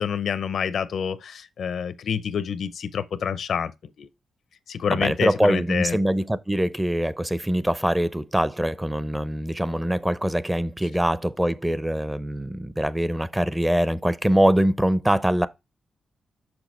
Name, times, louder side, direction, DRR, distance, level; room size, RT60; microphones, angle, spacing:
voice 1, 0.0-3.7 4.0-4.1 4.7-6.0, left 7 dB, 70° left, 0.5 m, -27 dB
voice 2, 4.9-15.5, right 1 dB, 10° right, 0.5 m, -23 dB
6.3 x 6.1 x 3.0 m
cardioid pair, 85°, 0 cm